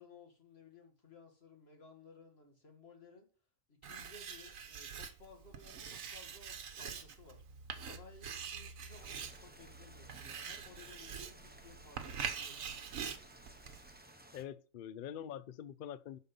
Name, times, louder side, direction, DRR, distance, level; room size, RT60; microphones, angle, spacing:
voice 1, 0.0-3.3 3.7-7.4 7.8-12.6, left 4 dB, 45° left, 2.2 m, -58 dB
Writing, 3.8-14.0, right 7 dB, 65° right, 1.3 m, -45 dB
sound 1, 8.9-14.4, right 1 dB, 10° right, 0.8 m, -58 dB
voice 2, 14.3-16.2, left 9 dB, 70° left, 0.5 m, -45 dB
12.0 x 4.5 x 5.4 m
omnidirectional pair, 1.6 m